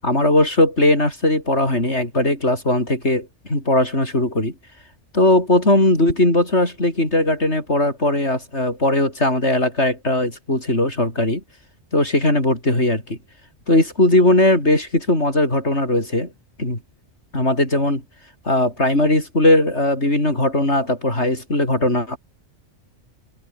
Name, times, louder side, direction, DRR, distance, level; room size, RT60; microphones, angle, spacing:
voice 1, 0.0-4.5 5.1-11.4 11.9-13.2 13.7-16.3 16.6-16.8 17.3-18.0 18.4-22.2, left 1 dB, 65° left, 8.0 m, -19 dB
omnidirectional pair, 1.2 m